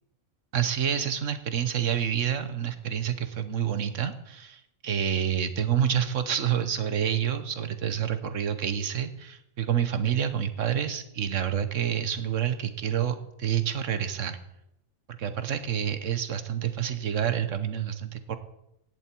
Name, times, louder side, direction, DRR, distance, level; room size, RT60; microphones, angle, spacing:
voice 1, 0.5-14.4 15.1-18.4, right 9 dB, 75° right, 11 dB, 1.5 m, -28 dB
16.5 x 11.0 x 4.6 m, 0.82 s
omnidirectional pair, 1.3 m